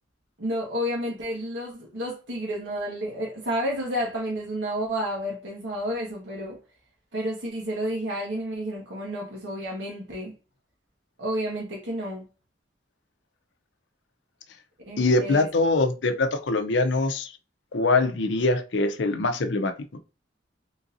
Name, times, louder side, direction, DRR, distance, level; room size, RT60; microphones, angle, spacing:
voice 1, 0.4-6.6 7.1-10.3 11.2-12.3 14.9-15.5, equal, 85° right, 1.1 m, -31 dB
voice 2, 15.0-17.3 17.7-20.0, left 2 dB, 80° left, 0.6 m, -23 dB
3.8 x 2.7 x 2.5 m
head